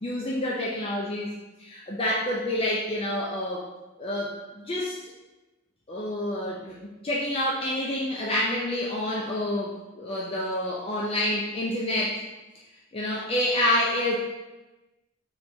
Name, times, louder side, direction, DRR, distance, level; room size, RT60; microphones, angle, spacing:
voice 1, 0.0-1.3 1.6-3.6 4.0-5.1 5.9-12.2 12.9-14.2, left 1 dB, 25° left, -4 dB, 0.4 m, -28 dB
3.3 x 3.2 x 4.1 m, 1.1 s
head